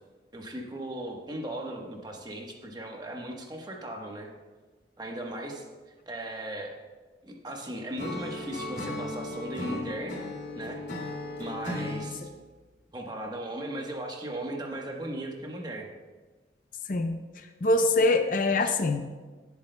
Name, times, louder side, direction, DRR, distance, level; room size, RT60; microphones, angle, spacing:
voice 1, 0.3-4.3 5.0-6.7 7.2-10.2 10.5-10.8 11.4-12.3 12.9-15.9 18.6-18.7, right 1 dB, 25° right, 1 dB, 1.1 m, -37 dB
Acoustic guitar / Strum, 8.0-12.1, left 2 dB, 75° left, 2.4 m, -36 dB
voice 2, 17.6-19.0, left 2 dB, 45° left, 6 dB, 0.5 m, -23 dB
17.5 x 8.0 x 2.2 m, 1.3 s
head